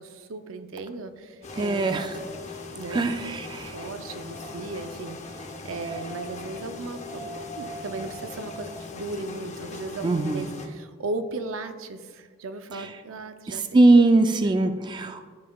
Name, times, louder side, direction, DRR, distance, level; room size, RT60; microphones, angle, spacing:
voice 1, 0.0-2.0 2.8-13.8 14.4-14.6, right 3 dB, 75° right, 9 dB, 0.5 m, -37 dB
Wind, 1.1-9.0, right 1 dB, 90° left, 2.3 m, -45 dB
sound 1, 1.4-10.7, left 4 dB, 35° left, 0.6 m, -40 dB
voice 2, 1.6-2.1 2.9-3.8 10.0-10.5 12.7-12.9 13.5-15.2, right 2 dB, 20° right, 6 dB, 0.3 m, -21 dB
13.0 x 5.4 x 2.3 m, 1.5 s
head